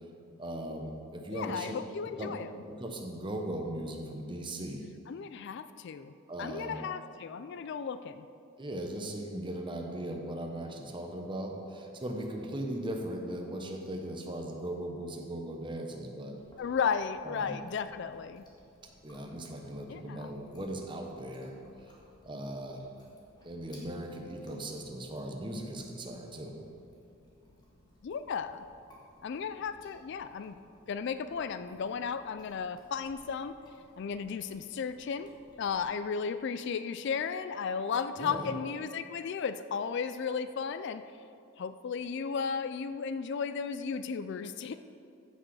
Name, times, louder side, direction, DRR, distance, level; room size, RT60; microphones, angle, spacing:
voice 1, 0.4-1.7 2.2-2.4 2.7-4.9 6.3-6.8 8.6-16.4 17.2-17.6 19.0-21.5 22.2-22.8 23.4-26.6 38.2-38.5, right 1 dB, 25° right, 2 dB, 1.0 m, -38 dB
voice 2, 1.3-2.5 5.1-6.1 6.4-8.3 16.6-18.4 19.9-20.3 28.0-28.6 29.2-30.6 30.9-33.6 34.0-35.3 35.6-41.0 41.6-44.7, left 6 dB, 55° left, 12 dB, 0.3 m, -34 dB
Chewing mastication, 16.4-35.8, left 1 dB, 20° left, 1.6 m, -62 dB
14.5 x 6.3 x 4.7 m, 2.5 s
head